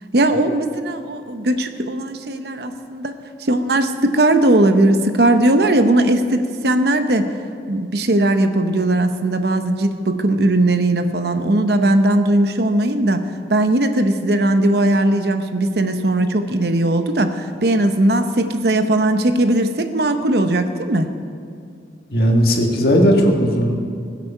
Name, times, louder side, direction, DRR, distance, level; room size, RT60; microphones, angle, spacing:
voice 1, 0.1-3.2 3.5-7.3 7.7-21.1, right 1 dB, 60° right, 8 dB, 0.8 m, -18 dB
voice 2, 22.1-23.8, equal, 55° left, 1 dB, 1.8 m, -16 dB
20.5 x 8.3 x 5.5 m, 2.3 s
head